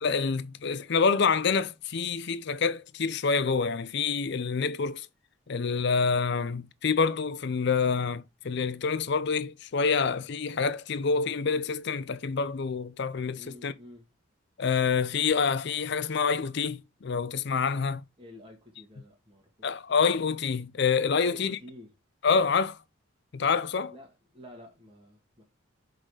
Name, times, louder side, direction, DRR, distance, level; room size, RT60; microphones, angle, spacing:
voice 1, 0.0-5.1 5.5-13.7 14.6-18.0 19.6-21.6 22.2-22.8 23.3-23.9, left 5 dB, 55° left, 0.5 m, -27 dB
voice 2, 13.4-14.1 18.2-19.7 21.2-21.9 23.9-25.4, equal, 25° right, 1.9 m, -50 dB
6.3 x 4.1 x 4.8 m
head